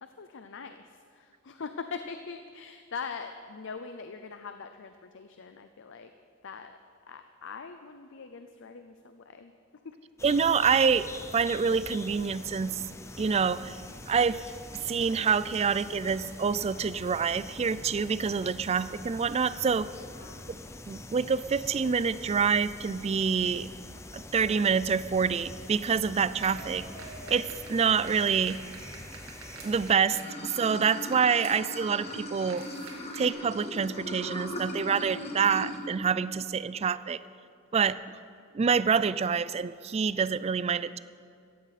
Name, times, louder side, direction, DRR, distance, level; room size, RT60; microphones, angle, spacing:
voice 1, 0.0-6.1 6.4-6.8 7.1-9.5 9.8-10.0 20.1-20.6, left 5 dB, 60° left, 8 dB, 0.6 m, -42 dB
sound 1, 10.2-29.9, left 2 dB, 15° left, 0.6 m, -45 dB
voice 2, 10.2-11.1 11.3-12.8 13.2-13.8 14.1-14.5 14.8-19.9 20.5-20.6 20.9-23.7 24.1-26.9 27.3-28.6 29.6-32.7 33.2-37.2 37.7-37.9 38.5-41.0, right 6 dB, 30° right, 16 dB, 0.3 m, -26 dB
sound 2, 26.3-33.3, right 3 dB, 85° right, 2.2 m, -47 dB
Water / Sink (filling or washing), 30.1-35.8, left 1 dB, 30° left, 1.6 m, -39 dB
16.5 x 14.5 x 4.2 m, 2.4 s
head